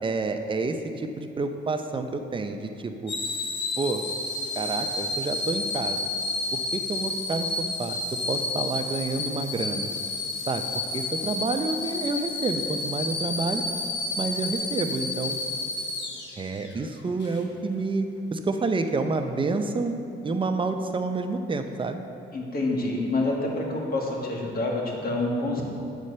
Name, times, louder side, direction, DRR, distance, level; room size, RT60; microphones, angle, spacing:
voice 1, 0.0-3.1 3.8-4.0 4.5-6.1 6.5-8.0 8.3-9.9 10.5-10.6 10.9-13.6 14.2-15.4 16.4-20.0 20.2-22.0, right 3 dB, 25° right, 6 dB, 0.6 m, -29 dB
sound 1, 3.1-16.7 17.2-17.4, left 3 dB, 65° left, 1.1 m, -31 dB
voice 2, 22.3-25.6, left 2 dB, 50° left, -1 dB, 1.6 m, -27 dB
8.2 x 4.2 x 6.6 m, 2.6 s
cardioid pair, 90°, 20 cm